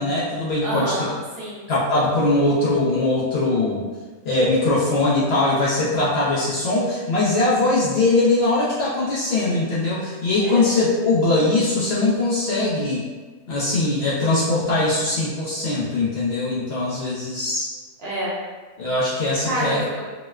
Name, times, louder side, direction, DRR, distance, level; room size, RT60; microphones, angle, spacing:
voice 1, 0.0-0.9 1.7-3.8 4.2-13.0 13.5-17.7 18.8-19.8, left 2 dB, 60° left, -7 dB, 0.7 m, -21 dB
voice 2, 0.6-1.6 10.4-10.6 18.0-18.3 19.4-20.0, right 1 dB, 55° right, -7 dB, 0.8 m, -27 dB
4.1 x 2.1 x 2.3 m, 1.3 s
omnidirectional pair, 1.4 m